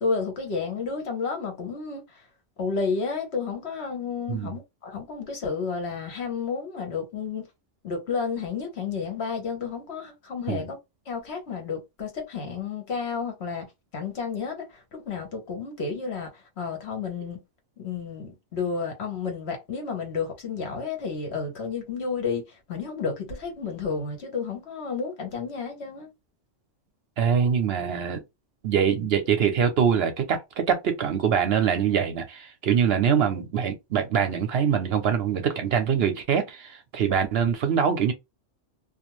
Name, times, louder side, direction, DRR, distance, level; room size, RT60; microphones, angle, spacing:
voice 1, 0.0-2.0 2.6-7.5 7.8-10.8 11.1-13.7 13.9-16.3 16.6-17.4 17.8-26.1, left 5 dB, 65° left, 1.2 m, -31 dB
voice 2, 27.2-28.2 28.6-38.1, right 7 dB, 65° right, 0.8 m, -24 dB
2.5 x 2.3 x 3.0 m
omnidirectional pair, 1.2 m